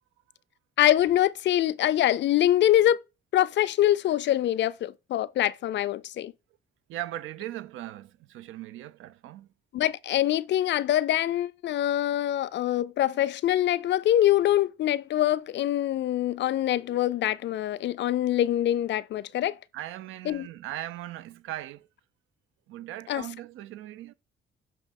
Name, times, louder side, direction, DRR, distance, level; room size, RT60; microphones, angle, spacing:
voice 1, 0.8-3.0 3.3-6.3 9.7-19.6 20.3-20.5 23.1-23.2, left 12 dB, 65° left, 0.5 m, -24 dB
voice 2, 6.9-9.5 19.7-21.9 22.7-24.1, right 14 dB, 85° right, 0.6 m, -39 dB
7.5 x 2.7 x 5.3 m
cardioid pair, 90°, 20 cm